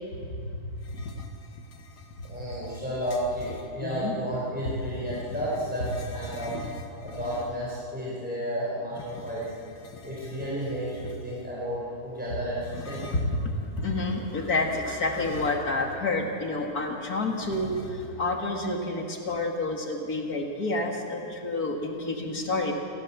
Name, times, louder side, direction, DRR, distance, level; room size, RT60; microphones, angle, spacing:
sound 1, 0.8-3.7 4.5-7.7 8.9-11.5 12.6-13.5 15.1-16.0 16.3-16.4 17.4-18.3, left 2 dB, 80° left, 2.0 m, -43 dB
voice 1, 2.2-6.5 7.0-9.5 10.0-13.1, equal, 5° right, -7 dB, 4.6 m, -32 dB
voice 2, 3.8-4.2 12.9-13.5 13.8-22.7, left 2 dB, 65° left, 1 dB, 2.6 m, -29 dB
29.0 x 14.5 x 7.4 m, 2.6 s
omnidirectional pair, 1.7 m